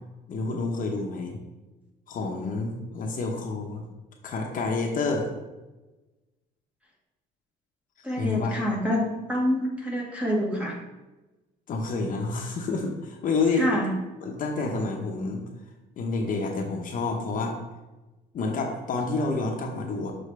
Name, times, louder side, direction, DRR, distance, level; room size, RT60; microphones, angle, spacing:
voice 1, 0.3-1.4 2.1-3.8 4.2-5.3 8.2-8.6 11.7-13.7 14.2-15.4 16.0-17.6 18.3-20.1, left 3 dB, 50° left, 1 dB, 0.9 m, -28 dB
voice 2, 8.0-10.7 13.5-13.9, equal, 5° right, -2 dB, 1.5 m, -26 dB
6.5 x 4.4 x 3.3 m, 1.1 s
cardioid pair, 110°, 17 cm